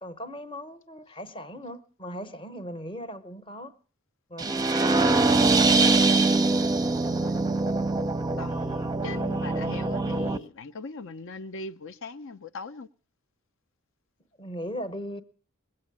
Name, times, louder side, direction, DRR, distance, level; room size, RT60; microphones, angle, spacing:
voice 1, 0.0-3.7 4.3-5.6 14.4-15.2, equal, 25° left, 0.9 m, -38 dB
sound 1, 4.4-10.4, right 3 dB, 20° right, 0.6 m, -23 dB
voice 2, 7.0-7.6 8.4-12.9, left 3 dB, 65° left, 0.7 m, -40 dB
20.5 x 7.6 x 8.5 m
head